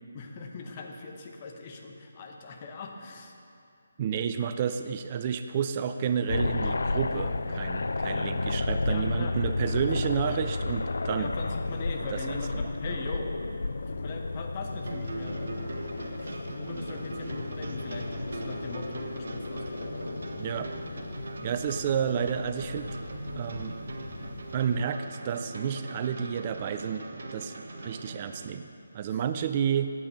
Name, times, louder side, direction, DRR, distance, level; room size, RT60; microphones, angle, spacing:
voice 1, 0.1-3.3 8.8-9.9 11.2-13.3 13.9-19.9 29.1-29.2, left 3 dB, 35° left, 2 dB, 1.0 m, -40 dB
voice 2, 4.0-11.3 12.1-12.4 20.4-20.7 21.4-23.0 23.4-23.8 24.5-27.0 27.3-28.7 28.9-29.9, right 8 dB, 30° right, 9 dB, 0.3 m, -30 dB
sound 1, 6.3-24.9, left 3 dB, 70° left, 0.4 m, -33 dB
sound 2, 14.7-28.6, right 2 dB, 60° right, 0.9 m, -41 dB
8.6 x 8.2 x 5.5 m, 2.6 s
figure-of-eight pair, 150°, 0 cm